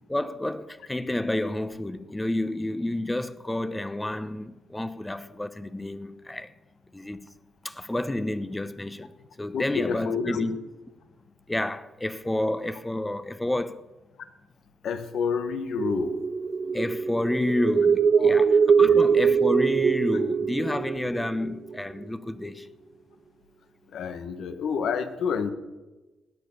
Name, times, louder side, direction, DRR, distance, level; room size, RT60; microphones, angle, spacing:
voice 1, 0.1-6.5 6.9-7.3 7.6-9.1 9.4-10.6 11.5-13.8 16.7-22.7, left 1 dB, 10° left, 0.9 m, -30 dB
voice 2, 9.5-10.5 14.8-16.2 18.1-18.3 18.8-19.0 23.9-25.5, left 6 dB, 70° left, 1.3 m, -29 dB
sound 1, 15.8-22.3, right 6 dB, 40° right, 0.7 m, -23 dB
17.5 x 9.2 x 6.8 m
cardioid pair, 90°, 0 cm